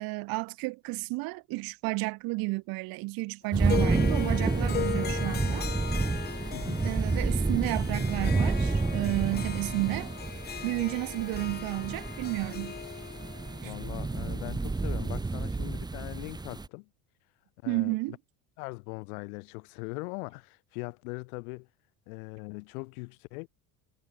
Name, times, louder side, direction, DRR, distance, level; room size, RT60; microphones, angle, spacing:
voice 1, 0.0-5.7 6.8-10.1 10.6-12.8 13.6-13.7 17.7-18.2, right 24 dB, 55° right, 0.5 m, -32 dB
sound 1, 3.5-16.7, right 3 dB, 10° right, 0.8 m, -30 dB
Harp, 3.6-14.9, left 8 dB, 25° left, 0.6 m, -39 dB
voice 2, 6.5-6.9 13.6-16.9 17.6-18.2 18.6-21.7 22.1-23.5, left 29 dB, 85° left, 3.9 m, -40 dB
supercardioid pair, 100°, 43 cm